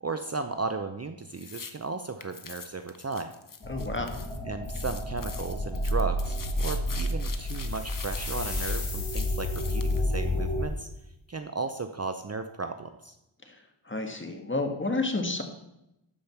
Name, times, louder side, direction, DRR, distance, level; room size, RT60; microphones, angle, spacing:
voice 1, 0.0-3.3 4.5-10.9 11.3-13.1, right 3 dB, 30° right, 7 dB, 0.7 m, -35 dB
sound 1, 1.3-1.7 2.2-4.4 4.6-10.1, left 5 dB, 40° left, 1.0 m, -43 dB
sound 2, 3.6-10.6, left 1 dB, 55° left, 3.7 m, -30 dB
voice 2, 3.7-4.1 13.5-13.6 13.9-15.4, left 2 dB, 25° left, 4 dB, 1.7 m, -30 dB
sound 3, 7.3-10.3, left 4 dB, 70° left, 2.6 m, -40 dB
12.5 x 5.2 x 5.9 m, 0.85 s
wide cardioid pair, 70°, 50 cm